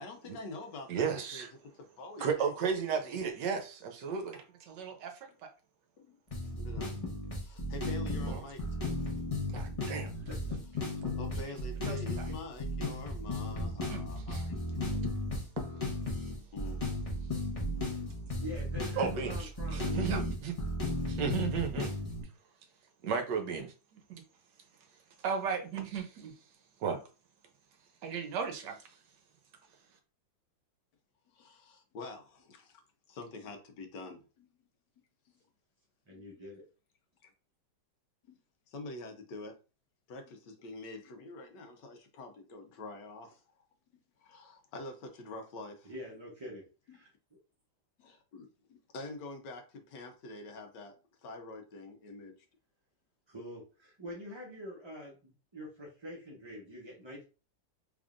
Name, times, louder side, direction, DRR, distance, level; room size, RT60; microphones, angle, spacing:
voice 1, 0.0-1.5 2.0-2.5 6.0-6.2 6.6-6.9 7.4-8.8 9.1-9.2 11.2-14.6 14.9-15.0 16.5-16.8 17.5-17.7 31.3-32.8 33.1-34.5 36.1-36.2 37.2-37.3 38.3-38.4 38.7-39.6 40.1-43.7 44.2-45.9 46.9-47.0 48.0-50.9 51.2-52.3, left 2 dB, 70° left, 1.4 m, -46 dB
voice 2, 0.9-1.5 2.2-5.1 5.4-5.5 8.3-8.4 9.5-10.1 11.4-11.5 11.9-12.2 13.9-14.0 14.3-14.4 15.6-15.7 19.0-20.5 21.1-21.9 23.0-24.2 25.2-26.3 26.8-27.0 28.0-28.8, right 6 dB, 70° right, 1.3 m, -34 dB
sound 1, 6.3-22.2, left 1 dB, 25° left, 0.7 m, -35 dB
voice 3, 18.4-19.9 36.1-36.6 45.8-46.6 46.9-47.1 53.3-57.2, left 1 dB, 35° right, 0.4 m, -45 dB
3.5 x 3.5 x 2.5 m
omnidirectional pair, 2.0 m